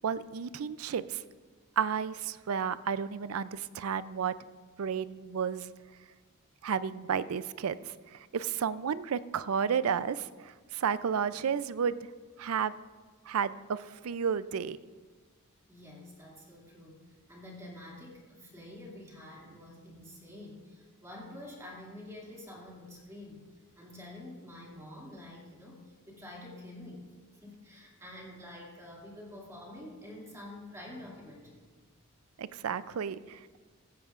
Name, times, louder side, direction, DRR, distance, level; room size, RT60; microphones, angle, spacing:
voice 1, 0.0-1.2 1.8-4.3 4.8-5.7 6.6-7.8 8.1-12.0 12.4-12.7 13.3-14.8 32.4-33.6, right 7 dB, 80° right, 15 dB, 0.4 m, -32 dB
voice 2, 15.7-17.0 17.3-23.4 23.8-31.6, left 1 dB, 15° right, -3 dB, 2.4 m, -48 dB
15.0 x 15.0 x 2.5 m, 1.4 s
head